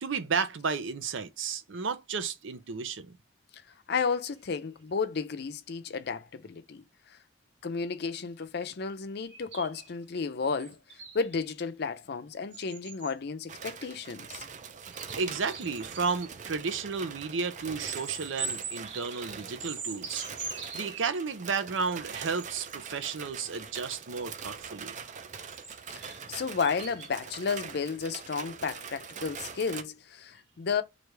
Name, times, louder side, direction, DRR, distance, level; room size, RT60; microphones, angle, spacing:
voice 1, 0.0-3.2 15.2-24.9, right 5 dB, 85° right, 0.6 m, -33 dB
voice 2, 3.9-6.8 7.1-7.2 7.6-10.8 11.1-14.4 26.0-30.8, left 5 dB, 60° left, 0.5 m, -32 dB
sound 1, 9.3-11.5 12.5-13.1 14.0-14.1 14.9-16.3 17.8-21.1 22.2-22.8 25.2-27.1, right 5 dB, 65° right, 1.2 m, -41 dB
sound 2, 13.5-29.8, right 6 dB, 40° right, 0.5 m, -43 dB
3.3 x 2.5 x 4.4 m
head